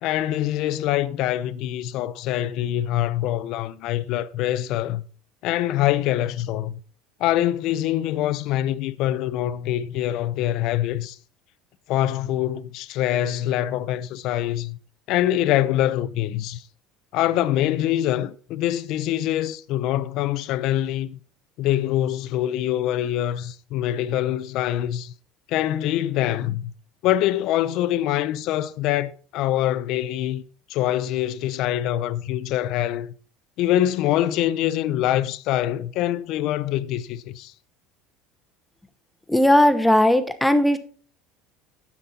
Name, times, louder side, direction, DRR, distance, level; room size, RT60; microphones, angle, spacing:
voice 1, 0.0-5.0 5.4-6.8 7.2-11.2 11.9-14.8 15.1-16.6 17.1-21.2 21.6-25.1 25.5-26.7 27.0-30.4 30.7-33.1 33.6-37.5, left 13 dB, 55° left, 0.5 m, -24 dB
voice 2, 39.3-40.8, left 1 dB, 5° left, 0.9 m, -17 dB
9.9 x 7.2 x 4.1 m
cardioid pair, 140°, 0 cm